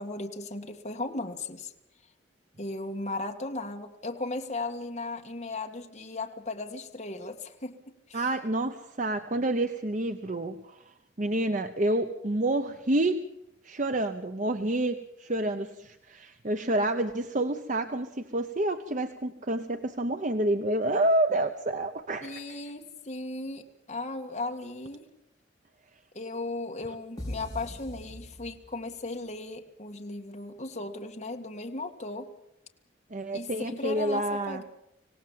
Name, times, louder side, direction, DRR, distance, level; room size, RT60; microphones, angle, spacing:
voice 1, 0.0-1.7 2.6-8.3 22.2-25.0 26.1-32.3 33.3-34.6, left 2 dB, 35° left, 3 dB, 2.0 m, -36 dB
voice 2, 8.1-10.8 11.2-13.2 13.6-22.4 33.1-34.6, right 1 dB, 40° right, 8 dB, 0.9 m, -28 dB
sound 1, 27.2-29.0, left 1 dB, 20° left, 5.1 m, -40 dB
26.0 x 17.5 x 7.4 m, 0.83 s
head